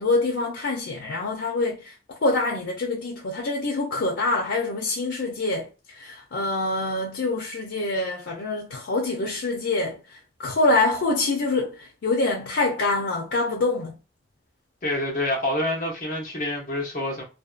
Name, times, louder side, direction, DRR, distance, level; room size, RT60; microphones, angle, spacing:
voice 1, 0.0-1.9 2.2-14.0, left 2 dB, 90° left, 0.5 m, -25 dB
voice 2, 14.8-17.2, left 1 dB, 45° left, 0.8 m, -27 dB
2.6 x 2.2 x 2.3 m
head